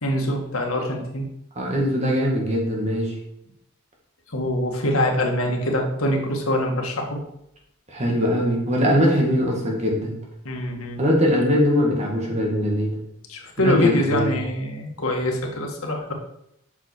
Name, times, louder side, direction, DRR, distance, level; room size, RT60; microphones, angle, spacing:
voice 1, 0.0-1.3 4.3-7.2 10.5-11.0 13.3-16.1, left 1 dB, 90° left, 1 dB, 1.7 m, -24 dB
voice 2, 1.6-3.2 7.9-10.1 11.0-13.0 13.6-14.3, equal, 30° right, -1 dB, 2.0 m, -21 dB
8.1 x 6.0 x 4.7 m, 0.79 s
head